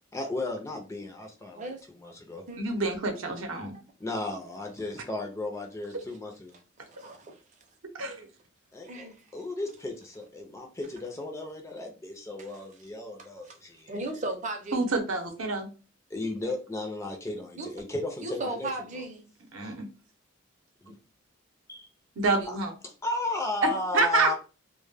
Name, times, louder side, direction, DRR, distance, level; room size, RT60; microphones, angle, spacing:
voice 1, 0.1-1.7 2.0-2.4 4.0-6.5 8.7-13.9 16.1-19.0 19.6-19.7 20.8-20.9 21.7-21.9 22.8-24.3, left 2 dB, 15° left, 0.4 m, -35 dB
voice 2, 2.6-3.8 8.0-8.3 14.7-15.7 19.5-19.9 22.2-22.7 23.6-24.3, right 3 dB, 75° right, 0.7 m, -27 dB
voice 3, 6.9-7.4 8.8-9.2 12.4-12.5 13.5-13.6 13.9-14.8 17.6-17.7 18.2-19.3, right 2 dB, 35° right, 0.5 m, -36 dB
2.1 x 2.1 x 3.2 m
head